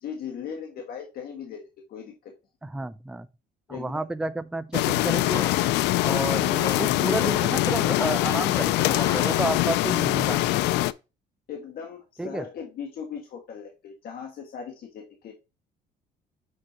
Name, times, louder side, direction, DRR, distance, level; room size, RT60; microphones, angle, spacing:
voice 1, 0.0-2.3 3.7-4.0 11.5-15.3, left 7 dB, 60° left, 1.6 m, -38 dB
voice 2, 2.6-3.3 3.7-5.4 6.0-10.7 12.2-12.4, right 2 dB, 5° right, 0.4 m, -31 dB
sound 1, 4.7-10.9, left 17 dB, 85° left, 0.4 m, -23 dB
sound 2, 5.2-10.0, left 3 dB, 20° left, 1.0 m, -37 dB
6.3 x 6.2 x 2.8 m
cardioid pair, 110°, 17 cm